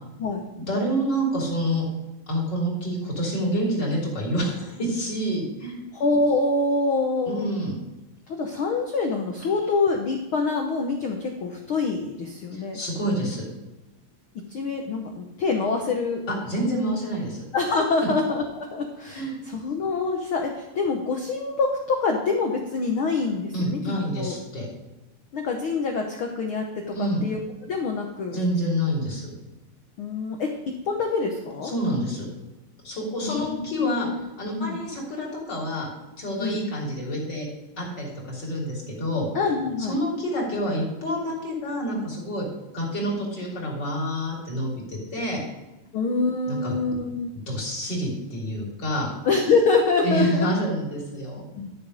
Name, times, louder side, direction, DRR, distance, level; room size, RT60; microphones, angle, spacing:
voice 1, 0.7-1.9 2.3-5.8 7.3-7.8 12.5-13.4 16.4-17.4 19.1-19.4 23.5-24.7 26.9-27.2 28.3-29.2 31.6-32.3 32.8-34.1 34.4-35.9 36.2-37.5 37.8-39.3 39.9-42.5 42.7-45.4 46.5-46.7 47.5-49.1 50.0-51.4, equal, 30° left, -3 dB, 3.8 m, -27 dB
voice 2, 5.9-7.5 8.3-12.8 14.5-16.2 16.9-17.0 17.5-24.4 25.3-28.4 30.0-30.5 30.8-31.7 33.2-34.2 34.6-34.8 36.4-36.6 39.3-40.0 45.9-47.3 49.2-50.5 51.6-51.7, left 3 dB, 90° left, 2 dB, 1.1 m, -25 dB
12.5 x 7.0 x 5.2 m, 1.0 s
omnidirectional pair, 4.1 m